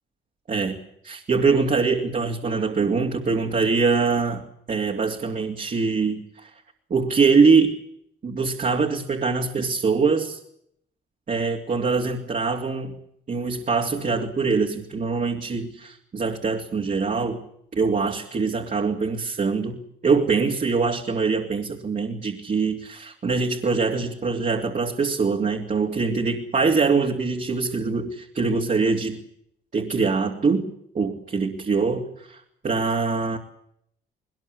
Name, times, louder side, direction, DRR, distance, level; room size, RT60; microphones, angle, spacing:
voice 1, 1.0-4.4 4.7-6.5 6.9-7.7 8.2-10.4 11.3-12.9 13.3-17.4 17.7-29.2 29.7-33.4, right 4 dB, 40° right, 0 dB, 3.0 m, -23 dB
21.0 x 20.0 x 8.5 m, 0.71 s
cardioid pair, 90°, 20 cm